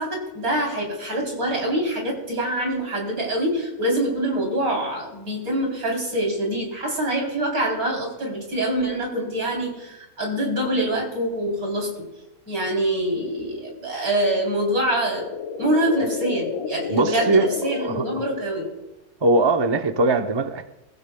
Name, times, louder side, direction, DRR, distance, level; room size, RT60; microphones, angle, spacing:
voice 1, 0.0-12.1 12.5-15.3 15.6-18.7, right 1 dB, 80° right, -1 dB, 4.0 m, -25 dB
sound 1, 14.7-18.9, left 7 dB, 80° left, 1.3 m, -32 dB
voice 2, 16.9-17.5 17.8-17.9 19.2-20.6, right 2 dB, 30° right, 7 dB, 0.5 m, -20 dB
22.0 x 15.0 x 2.2 m, 0.98 s
omnidirectional pair, 1.5 m